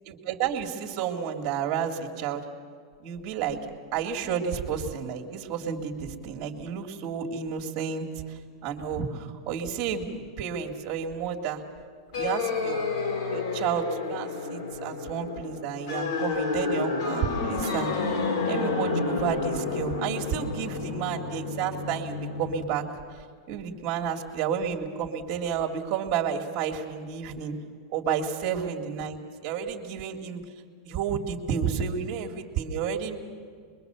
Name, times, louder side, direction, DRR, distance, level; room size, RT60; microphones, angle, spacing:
voice 1, 0.1-2.4 3.0-3.6 3.9-11.6 12.1-12.8 13.3-18.2 18.5-22.8 23.5-27.5 27.9-30.4 30.8-33.2, right 7 dB, 30° right, 3 dB, 2.2 m, -31 dB
sound 1, 12.1-22.6, left 4 dB, 70° left, 4.0 m, -30 dB
26.0 x 22.5 x 6.9 m, 2.1 s
supercardioid pair, 175°, 2 cm